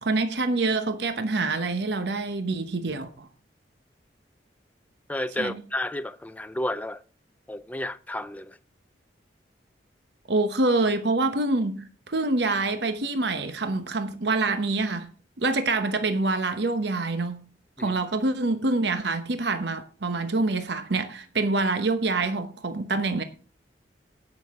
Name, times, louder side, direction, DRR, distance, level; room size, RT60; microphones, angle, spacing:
voice 1, 0.0-3.3 5.4-5.6 10.3-15.1 15.4-17.4 17.8-23.2, right 3 dB, 65° right, 1.0 m, -26 dB
voice 2, 5.1-7.0 7.5-8.6 17.8-18.0, left 1 dB, 10° left, 0.4 m, -31 dB
17.5 x 6.2 x 3.6 m
head